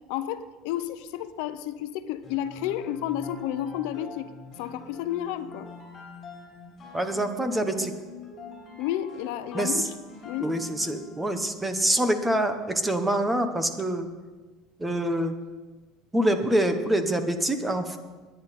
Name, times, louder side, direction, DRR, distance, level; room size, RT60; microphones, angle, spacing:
voice 1, 0.1-4.3 4.6-5.7 8.8-9.8 10.2-10.5, left 12 dB, 70° left, 11 dB, 0.7 m, -31 dB
sound 1, 2.2-11.4, left 4 dB, 25° left, 5.3 m, -45 dB
voice 2, 6.9-7.9 9.5-9.9 10.4-14.1 14.8-15.3 16.1-18.0, right 1 dB, 10° right, 8 dB, 1.0 m, -25 dB
19.5 x 10.0 x 4.2 m, 1.3 s
cardioid pair, 160°, 0 cm